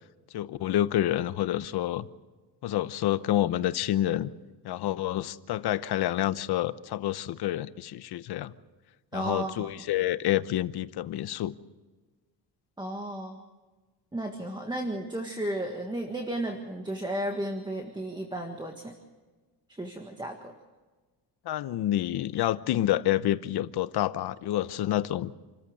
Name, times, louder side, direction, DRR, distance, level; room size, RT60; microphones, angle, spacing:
voice 1, 0.3-2.1 2.6-4.3 4.6-8.5 9.1-11.5 21.4-25.3, left 13 dB, 75° left, 14 dB, 0.9 m, -28 dB
voice 2, 9.1-9.7 12.8-13.4 14.1-18.9 19.7-20.5, right 1 dB, 10° right, 3 dB, 1.7 m, -34 dB
28.0 x 14.0 x 6.5 m, 1.3 s
cardioid pair, 135°, 40 cm